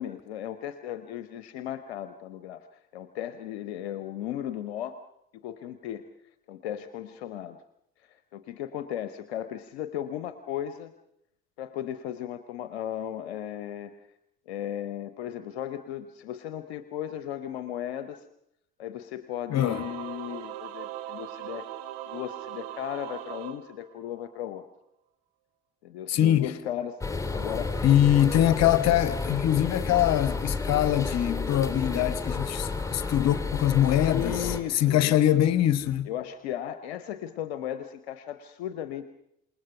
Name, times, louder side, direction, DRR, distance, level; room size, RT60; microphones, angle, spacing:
voice 1, 0.0-2.7 2.9-5.0 5.3-6.1 6.5-7.6 8.1-10.9 11.6-13.9 14.5-18.2 18.8-21.7 22.1-24.6 25.8-27.0 27.3-27.9 28.1-28.3 34.0-35.1 36.1-39.0, left 11 dB, 70° left, 0.9 m, -36 dB
voice 2, 19.5-19.9 26.1-26.5 27.8-36.1, left 12 dB, 55° left, 1.1 m, -23 dB
Singing / Musical instrument, 19.5-24.4, right 13 dB, 70° right, 1.4 m, -40 dB
sound 1, 27.0-34.6, left 3 dB, 10° left, 3.4 m, -31 dB
27.5 x 19.5 x 5.7 m
figure-of-eight pair, 45°, 32 cm